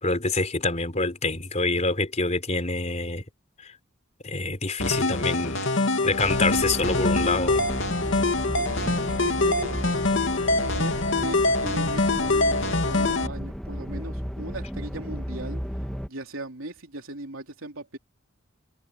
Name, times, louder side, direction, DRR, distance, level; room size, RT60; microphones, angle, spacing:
voice 1, 0.0-3.2 4.2-5.6 6.0-7.7, left 3 dB, 35° left, 4.0 m, -26 dB
sound 1, 4.8-13.3, left 2 dB, 65° left, 2.9 m, -24 dB
sound 2, 6.2-16.1, equal, 5° left, 2.4 m, -34 dB
voice 2, 8.6-9.8 10.5-15.6 16.1-18.0, right 1 dB, 75° right, 3.7 m, -38 dB
head